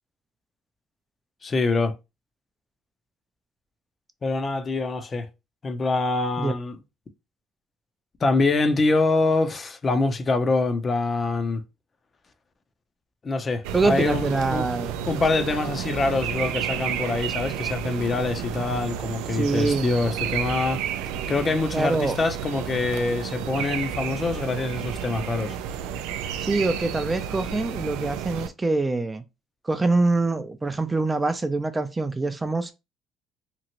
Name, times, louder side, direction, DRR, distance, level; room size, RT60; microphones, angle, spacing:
voice 1, 1.4-1.9 4.2-5.3 5.6-6.8 8.2-11.6 13.2-14.7 15.1-20.8 21.3-25.6, left 3 dB, 35° left, 0.6 m, -25 dB
sound 1, 13.6-28.5, right 9 dB, 85° right, 0.3 m, -31 dB
voice 2, 13.7-14.9 19.3-19.9 21.7-22.2 26.4-29.2 29.6-32.7, right 3 dB, 20° right, 0.4 m, -24 dB
3.0 x 2.4 x 2.8 m
supercardioid pair, 80°, 0 cm